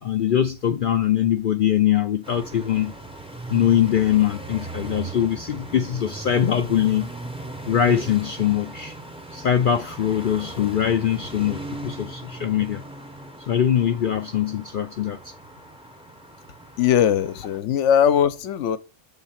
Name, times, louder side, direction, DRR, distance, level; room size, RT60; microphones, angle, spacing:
voice 1, 0.0-2.9 3.5-7.1 7.7-9.0 9.3-12.8 13.5-15.3, left 10 dB, 55° left, 0.6 m, -22 dB
sound 1, 2.2-17.6, right 2 dB, 5° right, 0.6 m, -38 dB
voice 2, 16.8-18.8, left 9 dB, 75° left, 1.0 m, -20 dB
7.2 x 3.8 x 5.7 m
omnidirectional pair, 1.3 m